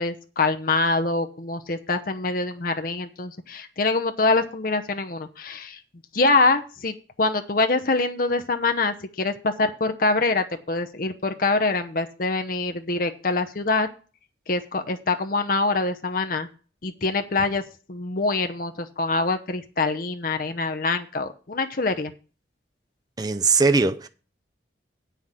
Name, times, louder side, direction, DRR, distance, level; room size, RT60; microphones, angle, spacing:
voice 1, 0.0-5.8 6.1-13.9 14.5-16.5 16.8-17.6 17.9-22.1, left 3 dB, 50° left, 0.8 m, -24 dB
voice 2, 23.2-24.1, right 4 dB, 20° right, 0.5 m, -20 dB
8.0 x 5.8 x 7.3 m
head